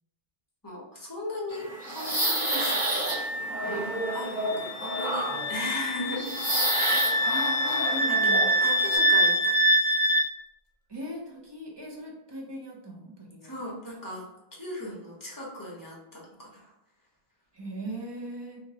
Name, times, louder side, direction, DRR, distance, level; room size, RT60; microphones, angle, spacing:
voice 1, 0.6-3.3 4.1-6.9 8.1-9.6 13.4-14.3 14.6-16.7, left 1 dB, 20° left, -4 dB, 0.8 m, -38 dB
sound 1, 1.5-9.0, right 1 dB, 10° right, 0.8 m, -30 dB
Wind instrument woodwind instrument, 3.0-10.3, right 1 dB, 90° left, 0.9 m, -26 dB
voice 2, 7.2-8.5 10.9-13.5 17.5-18.6, right 1 dB, 35° right, -3 dB, 0.5 m, -39 dB
2.9 x 2.6 x 2.7 m, 0.90 s
omnidirectional pair, 1.1 m